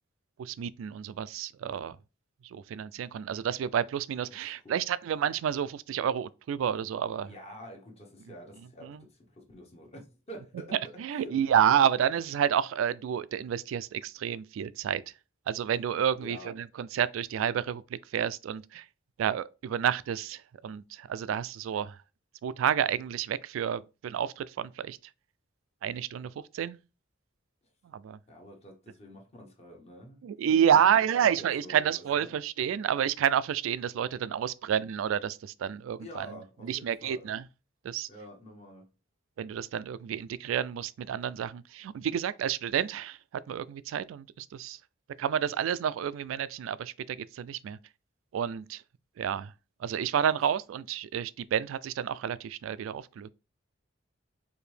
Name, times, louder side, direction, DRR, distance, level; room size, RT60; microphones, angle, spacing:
voice 1, 0.4-2.0 2.4-7.3 8.8-9.0 11.0-15.0 15.5-18.8 19.2-22.0 22.4-25.0 25.8-26.8 27.9-28.2 30.2-36.3 36.6-37.4 37.8-38.1 39.4-43.2 43.5-44.8 45.2-47.8 48.3-48.8 49.2-49.5 49.8-53.3, right 9 dB, 85° right, 0.3 m, -29 dB
voice 2, 4.3-4.8 7.2-11.4 16.2-16.5 28.3-30.2 30.5-32.4 36.0-37.3 38.1-38.9 50.4-50.5, equal, 35° left, 0.9 m, -48 dB
4.8 x 2.6 x 3.2 m
head